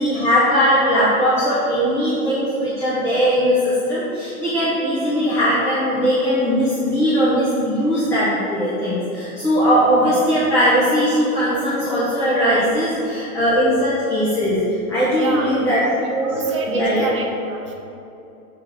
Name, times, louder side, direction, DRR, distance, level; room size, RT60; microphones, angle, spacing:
voice 1, 0.0-15.8 16.1-17.1, equal, 5° left, -12 dB, 1.2 m, -19 dB
voice 2, 15.1-15.6 16.2-17.7, right 3 dB, 20° right, 0 dB, 0.4 m, -29 dB
7.5 x 4.0 x 6.6 m, 2.8 s
hypercardioid pair, 160°, 44 cm